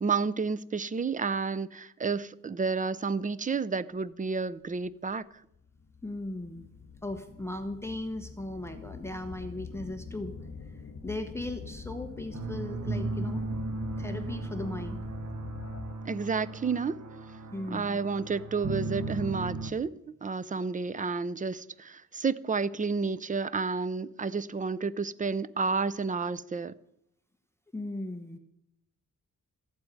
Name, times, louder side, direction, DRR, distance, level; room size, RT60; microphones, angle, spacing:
voice 1, 0.0-5.2 16.1-17.0 17.7-19.9 20.2-26.7, right 4 dB, 25° right, 0.5 m, -30 dB
sound 1, 4.7-4.9 5.5-16.2, left 5 dB, 55° left, 1.3 m, -45 dB
voice 2, 6.0-6.7 7.0-10.3 10.7-13.5 14.0-15.0 17.5-18.0 27.7-28.4, left 1 dB, 10° left, 1.0 m, -37 dB
sound 2, 12.3-19.7, right 3 dB, 60° right, 1.0 m, -36 dB
14.5 x 7.9 x 9.7 m
wide cardioid pair, 150°, 32 cm